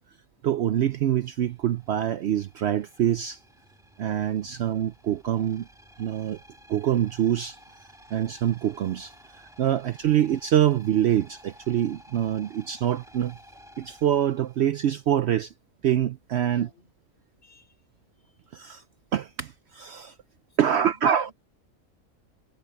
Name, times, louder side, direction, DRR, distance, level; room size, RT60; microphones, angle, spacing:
voice 1, 0.4-3.4 4.0-5.7 6.0-6.4 6.7-7.6 8.1-13.4 13.8-15.5 15.8-16.7 18.5-18.8 19.1-20.1 20.6-21.3, right 10 dB, 65° right, 0.7 m, -25 dB
sound 1, 0.8-15.4, equal, ahead, 1.7 m, -54 dB
voice 2, 16.4-16.9 17.4-17.8 18.2-18.6 20.5-21.3, left 1 dB, 45° left, 4.7 m, -55 dB
omnidirectional pair, 1.4 m